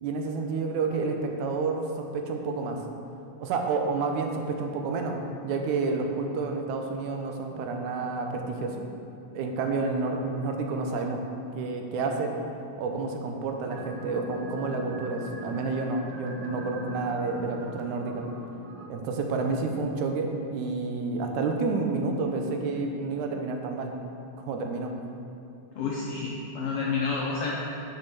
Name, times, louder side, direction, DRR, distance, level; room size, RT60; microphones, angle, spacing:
voice 1, 0.0-2.8 3.4-5.2 5.4-8.8 9.3-11.2 11.6-12.4 12.8-18.2 18.9-23.9 24.5-24.9, right 3 dB, 85° right, 3 dB, 2.1 m, -29 dB
sound 1, 13.7-18.9, left 1 dB, 70° right, 1.4 m, -41 dB
voice 2, 25.7-27.5, left 4 dB, 75° left, -4 dB, 1.3 m, -29 dB
6.3 x 5.8 x 6.7 m, 2.8 s
omnidirectional pair, 3.5 m